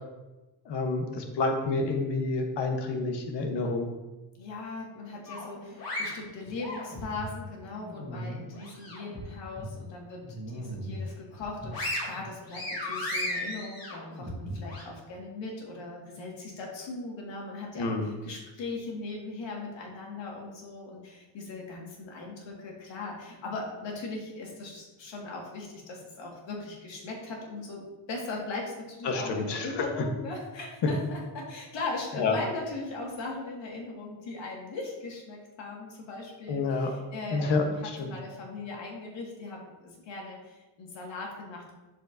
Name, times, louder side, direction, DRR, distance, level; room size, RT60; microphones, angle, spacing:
voice 1, 0.7-3.9 17.8-18.1 29.0-29.8 32.2-32.3 36.5-36.9 37.3-38.1, left 3 dB, 70° left, 3 dB, 1.2 m, -29 dB
voice 2, 4.4-41.7, left 3 dB, 85° left, -1 dB, 2.0 m, -39 dB
sound 1, 5.3-7.3 7.7-9.2 9.6-9.7 10.2-11.0 11.4-14.8, left 1 dB, 50° left, 2.5 m, -36 dB
11.5 x 5.0 x 2.7 m, 1.1 s
cardioid pair, 165°, 44 cm